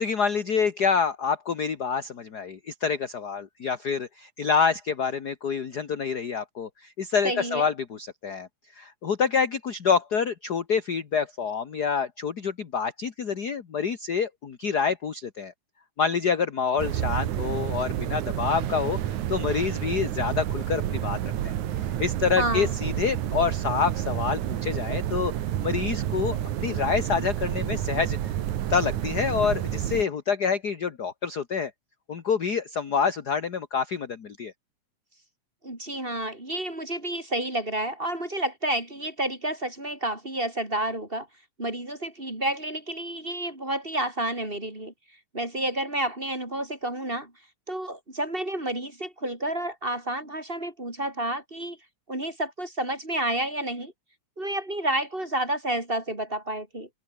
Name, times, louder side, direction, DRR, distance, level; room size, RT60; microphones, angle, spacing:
voice 1, 0.0-8.5 8.7-15.5 16.0-21.2 21.4-25.3 25.6-28.3 28.7-31.7 32.1-34.5, left 6 dB, 40° left, 1.6 m, -27 dB
voice 2, 7.2-7.7 22.4-22.8 35.6-41.3 41.6-44.9 45.3-47.3 47.7-51.8 52.1-53.9 54.4-56.9, right 1 dB, 15° right, 5.1 m, -30 dB
sound 1, 16.8-30.1, right 11 dB, 80° right, 2.8 m, -29 dB
open air
omnidirectional pair, 3.4 m